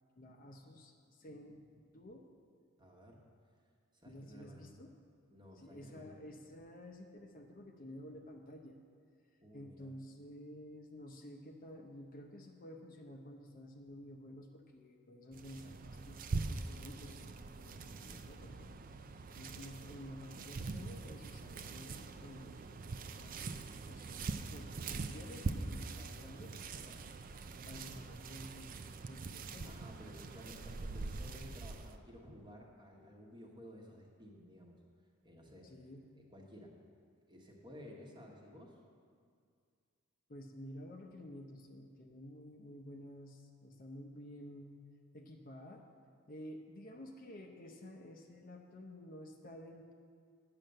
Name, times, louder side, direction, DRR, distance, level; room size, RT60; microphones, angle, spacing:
voice 1, 0.2-2.2 4.1-4.9 5.5-8.8 9.5-18.7 19.3-27.1 27.7-29.8 35.6-36.1 40.3-44.8 45.1-45.8 46.3-49.9, left 1 dB, 40° left, 2 dB, 0.7 m, -52 dB
voice 2, 2.8-3.2 3.9-4.7 5.3-6.2 9.4-9.9 29.7-34.8 35.2-35.7 36.1-36.7 37.3-38.8, equal, 20° right, -1 dB, 1.2 m, -54 dB
sound 1, 15.3-32.0, right 3 dB, 40° right, 0.4 m, -43 dB
9.1 x 6.7 x 7.7 m, 2.2 s
head